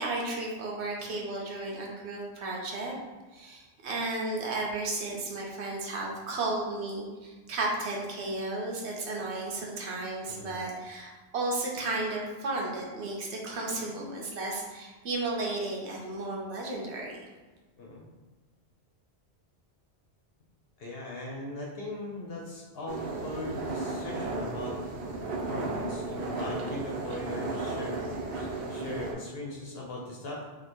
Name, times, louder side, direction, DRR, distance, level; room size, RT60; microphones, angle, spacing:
voice 1, 0.0-2.9 3.3-17.2, right 2 dB, 80° right, -1 dB, 1.1 m, -33 dB
voice 2, 20.8-24.7 25.4-28.0 28.3-30.4, left 2 dB, 65° left, -2 dB, 0.9 m, -39 dB
sound 1, 22.9-29.1, right 3 dB, 65° right, 0.8 m, -34 dB
2.9 x 2.8 x 4.3 m, 1.3 s
omnidirectional pair, 1.1 m